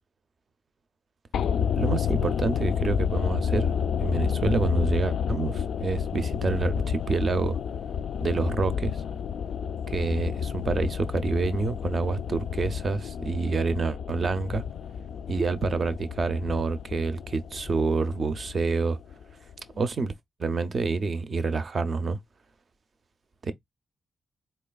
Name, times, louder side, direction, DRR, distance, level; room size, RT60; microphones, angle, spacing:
sound 1, 1.3-19.5 19.8-19.9, left 7 dB, 80° left, 0.3 m, -30 dB
voice 1, 1.8-3.7 4.0-7.6 8.2-9.0 9.9-14.6 15.3-19.0 19.7-20.1 20.4-22.2 23.4-23.5, right 4 dB, 35° right, 0.5 m, -27 dB
4.2 x 3.2 x 2.2 m
wide cardioid pair, 165°, 0 cm